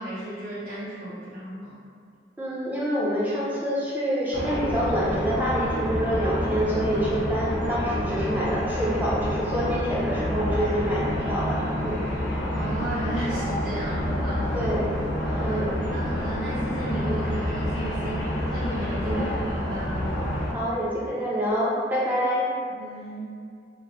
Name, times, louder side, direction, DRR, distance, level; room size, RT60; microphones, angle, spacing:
voice 1, 0.0-1.8 12.5-14.7 15.2-15.6 15.9-20.1 22.7-23.3, right 1 dB, 50° right, -13 dB, 0.7 m, -34 dB
voice 2, 2.4-12.0 14.5-15.0 15.4-15.7 19.0-19.3 20.5-22.5, equal, 10° right, -6 dB, 0.4 m, -27 dB
sound 1, 4.3-20.5, equal, 90° left, 0.6 m, -28 dB
Piano, 4.9-13.0, left 1 dB, 35° left, 0.6 m, -45 dB
2.9 x 2.0 x 2.9 m, 2.2 s
head